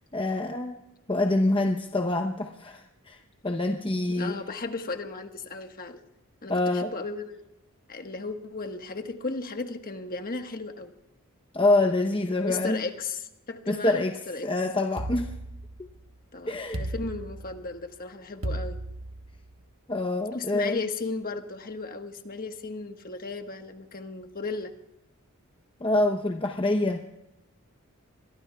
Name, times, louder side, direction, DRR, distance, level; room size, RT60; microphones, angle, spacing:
voice 1, 0.1-0.8 1.1-3.2 3.4-4.3 6.5-6.9 11.5-12.8 13.7-15.3 15.8-15.9 16.5-16.8 19.9-20.8 25.8-27.0, left 2 dB, 25° left, 3 dB, 0.9 m, -26 dB
voice 2, 4.1-6.0 6.4-7.5 7.9-10.9 12.4-14.5 16.3-18.8 20.3-24.7, left 3 dB, 40° left, 5 dB, 1.4 m, -35 dB
sound 1, 15.0-16.1 16.7-17.8 18.4-19.5, right 1 dB, 65° right, 1.2 m, -35 dB
26.5 x 22.5 x 2.4 m, 0.91 s
head